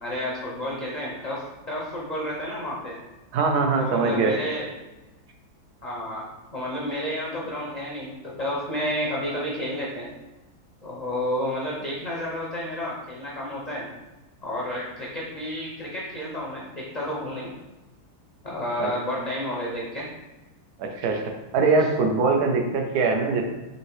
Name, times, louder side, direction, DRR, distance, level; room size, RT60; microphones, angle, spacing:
voice 1, 0.0-3.0 3.8-4.6 5.8-6.3 6.5-10.1 10.8-13.9 14.4-17.5 18.4-20.1, equal, 45° left, -4 dB, 0.5 m, -31 dB
voice 2, 3.3-4.3 18.8-18.9 20.8-21.2 21.5-23.4, right 4 dB, 75° right, 3 dB, 1.2 m, -22 dB
5.2 x 2.8 x 3.1 m, 1.1 s
omnidirectional pair, 1.7 m